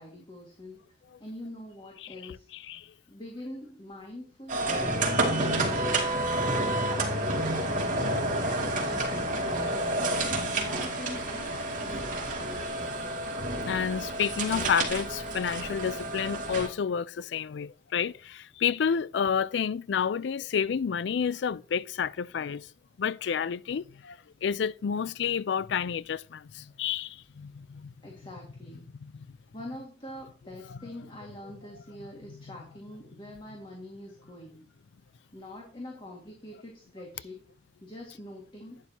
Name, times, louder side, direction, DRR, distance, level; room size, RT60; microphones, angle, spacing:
voice 1, 0.0-2.5 3.1-6.1 6.6-8.2 8.5-10.1 10.4-12.6 28.0-28.9 29.5-34.6 35.3-37.4 37.8-38.8, left 1 dB, 30° left, 2.1 m, -44 dB
voice 2, 2.5-2.9 12.5-12.9 13.6-22.7 23.0-27.9 29.0-29.4 30.7-30.8, left 7 dB, 70° left, 0.4 m, -30 dB
sound 1, 4.5-16.7, right 1 dB, 45° right, 2.5 m, -29 dB
11.0 x 9.8 x 2.9 m
head